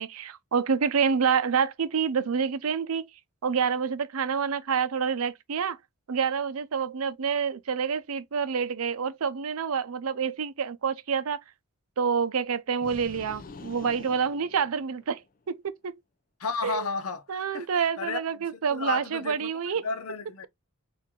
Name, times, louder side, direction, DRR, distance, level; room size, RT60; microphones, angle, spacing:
voice 1, 0.0-3.1 3.4-5.8 6.1-11.4 12.0-15.2 15.5-16.0 16.6-16.9 17.3-19.9, right 6 dB, 80° right, 0.5 m, -27 dB
sound 1, 12.8-15.3, left 3 dB, 40° left, 0.5 m, -46 dB
voice 2, 16.4-20.5, left 4 dB, 90° left, 0.8 m, -34 dB
4.5 x 2.5 x 3.6 m
head